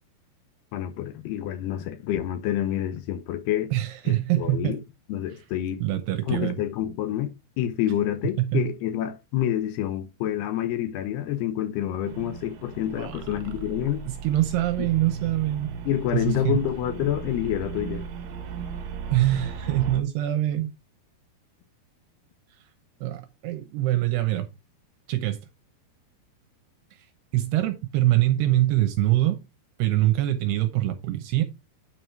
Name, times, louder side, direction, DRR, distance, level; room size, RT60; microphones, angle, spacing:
voice 1, 0.7-3.7 4.1-4.8 5.1-5.8 6.3-14.0 14.8-14.9 15.9-18.0, left 11 dB, 75° left, 2.9 m, -28 dB
voice 2, 3.7-4.8 5.8-6.6 8.4-8.7 13.0-13.2 14.1-15.7 16.1-16.6 19.1-20.7 23.0-24.5 25.1-25.4 27.3-29.4 29.8-31.4, right 15 dB, 80° right, 2.9 m, -24 dB
sound 1, 12.0-20.0, right 6 dB, 65° right, 2.8 m, -36 dB
9.3 x 4.9 x 4.5 m
omnidirectional pair, 4.8 m